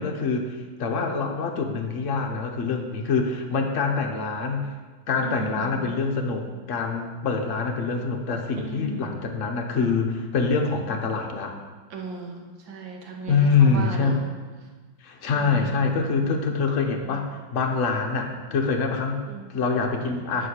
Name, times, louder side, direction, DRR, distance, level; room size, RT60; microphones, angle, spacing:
voice 1, 0.0-4.7 5.1-11.6 13.3-14.3 15.0-17.3 17.5-19.2 19.5-20.5, left 4 dB, 50° left, 2 dB, 1.2 m, -25 dB
voice 2, 5.2-6.0 8.6-9.1 11.9-14.2 15.3-15.7 19.3-19.6, right 4 dB, 85° right, 1 dB, 1.9 m, -36 dB
10.5 x 5.1 x 6.5 m, 1.4 s
omnidirectional pair, 2.0 m